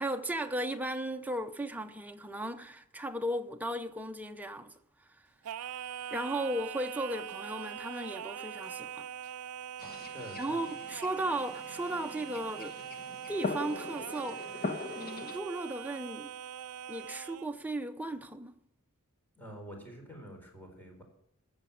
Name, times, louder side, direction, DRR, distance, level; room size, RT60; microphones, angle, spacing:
voice 1, 0.0-4.7 6.1-9.1 10.4-12.8 13.3-16.4 16.9-18.5, right 1 dB, 5° right, 0.8 m, -36 dB
Singing, 5.4-17.5, right 9 dB, 80° right, 0.4 m, -42 dB
sound 1, 9.8-15.4, left 3 dB, 45° left, 1.2 m, -41 dB
voice 2, 9.8-10.6 19.3-21.0, equal, 10° left, 4.2 m, -47 dB
14.5 x 7.2 x 8.6 m
head